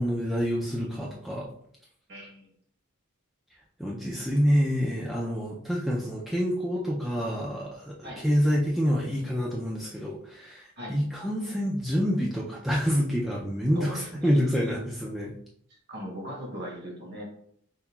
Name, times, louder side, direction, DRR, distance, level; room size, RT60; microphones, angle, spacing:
voice 1, 0.0-1.5 3.8-15.3, equal, ahead, -5 dB, 0.3 m, -27 dB
voice 2, 2.1-2.5 8.0-8.2 10.8-11.0 13.7-14.8 15.9-17.2, equal, 50° right, -2 dB, 1.2 m, -39 dB
5.4 x 2.2 x 2.3 m, 0.67 s
head